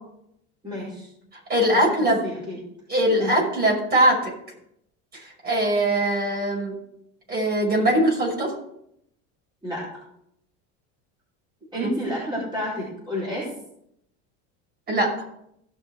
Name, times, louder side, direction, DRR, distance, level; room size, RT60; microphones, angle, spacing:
voice 1, 0.6-1.1 1.7-2.6 3.2-3.3 9.6-9.8 11.7-13.5, left 1 dB, 15° right, -6 dB, 4.6 m, -30 dB
voice 2, 1.5-2.2 2.9-4.3 5.1-6.7 7.3-8.5 11.8-11.9 14.9-15.1, right 1 dB, 30° right, -2 dB, 5.7 m, -21 dB
16.5 x 6.4 x 4.7 m, 0.76 s
cardioid pair, 130°, 33 cm